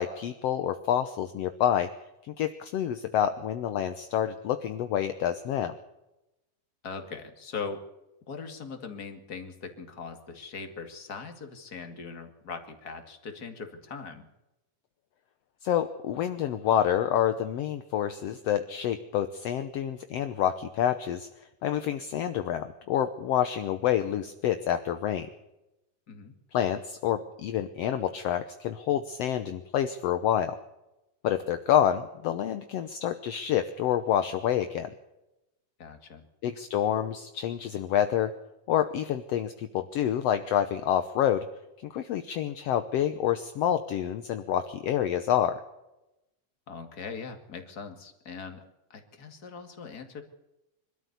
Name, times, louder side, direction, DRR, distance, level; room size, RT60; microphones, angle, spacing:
voice 1, 0.0-1.9 2.2-5.8 15.6-21.3 21.6-25.3 26.5-30.6 31.2-34.9 36.4-38.3 38.7-41.5 41.8-45.6, left 10 dB, 65° left, 9 dB, 1.7 m, -28 dB
voice 2, 6.8-7.8 8.3-14.3 26.1-26.3 35.8-36.2 46.7-48.6 48.9-50.2, left 5 dB, 30° left, 5 dB, 2.5 m, -40 dB
24.5 x 13.0 x 8.2 m, 0.95 s
omnidirectional pair, 3.7 m